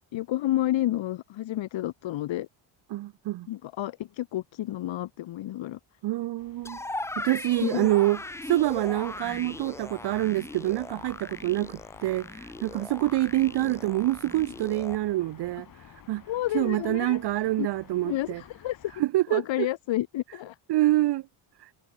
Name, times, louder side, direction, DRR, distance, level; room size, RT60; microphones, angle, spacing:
voice 1, 0.1-2.5 3.5-5.8 7.6-7.9 16.3-17.2 17.6-17.7 18.0-18.9 19.3-20.6, left 14 dB, 65° left, 2.4 m, -30 dB
voice 2, 2.9-3.5 6.0-6.8 7.2-8.2 8.5-15.7 16.1-16.2 16.5-18.4 19.0-19.7 20.7-21.3 21.6-21.7, right 16 dB, 55° right, 0.7 m, -26 dB
sound 1, 6.4-19.0, left 9 dB, 40° left, 4.8 m, -52 dB
sound 2, 6.6-15.0, left 2 dB, 5° left, 0.7 m, -39 dB
cardioid pair, 155°, 49 cm